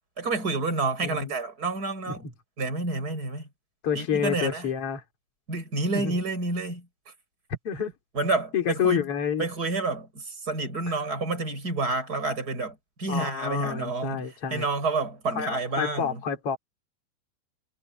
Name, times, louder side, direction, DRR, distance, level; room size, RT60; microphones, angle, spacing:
voice 1, 0.2-2.2 2.6-3.5 3.9-4.7 5.5-6.9 8.1-9.0 9.4-16.2, right 3 dB, 20° right, 8.3 m, -29 dB
voice 2, 1.0-1.3 2.1-2.2 3.8-5.0 5.9-6.2 7.6-7.9 8.5-9.5 13.1-14.7 15.4-16.6, left 7 dB, 35° left, 4.4 m, -28 dB
omnidirectional pair, 4.5 m